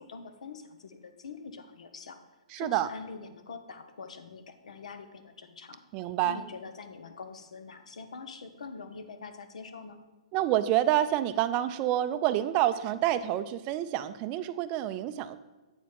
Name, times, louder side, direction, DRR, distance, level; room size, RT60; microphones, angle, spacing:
voice 1, 0.0-2.2 2.6-5.8 6.2-10.0, left 4 dB, 80° left, 8 dB, 0.8 m, -44 dB
voice 2, 2.5-2.9 5.9-6.4 10.3-15.4, right 12 dB, 30° right, 13 dB, 0.3 m, -28 dB
7.9 x 4.2 x 4.7 m, 1.2 s
hypercardioid pair, 150°, 4 cm